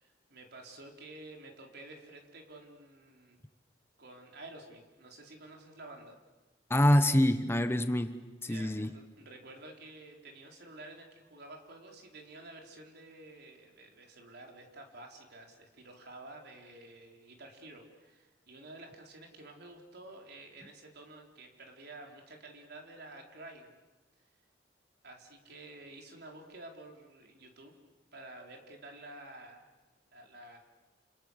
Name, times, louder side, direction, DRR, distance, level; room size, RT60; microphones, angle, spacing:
voice 1, 0.0-3.4 4.0-6.2 8.5-23.7 25.0-27.7 28.1-29.7 30.1-30.6, right 2 dB, 60° right, 2 dB, 4.3 m, -51 dB
voice 2, 6.7-8.9, left 1 dB, 15° left, 10 dB, 1.0 m, -26 dB
29.0 x 28.5 x 6.7 m, 1.2 s
head